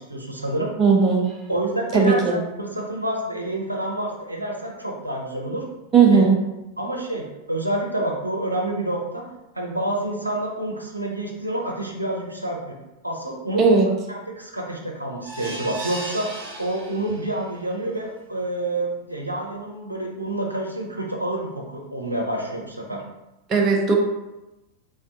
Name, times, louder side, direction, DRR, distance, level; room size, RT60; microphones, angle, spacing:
voice 1, 0.0-0.7 1.5-5.6 6.1-6.2 6.8-9.2 9.5-12.6 13.0-13.6 14.1-16.3 16.6-23.0, right 1 dB, 85° right, -1 dB, 0.6 m, -28 dB
voice 2, 0.8-1.3 1.9-2.4 5.9-6.4 13.6-13.9 23.5-24.0, right 5 dB, 25° right, 0 dB, 0.7 m, -16 dB
sound 1, 15.2-17.5 17.9-18.0 18.4-18.5, right 1 dB, 50° right, 1.1 m, -36 dB
3.5 x 3.2 x 2.8 m, 0.97 s
figure-of-eight pair, 90°, 0 cm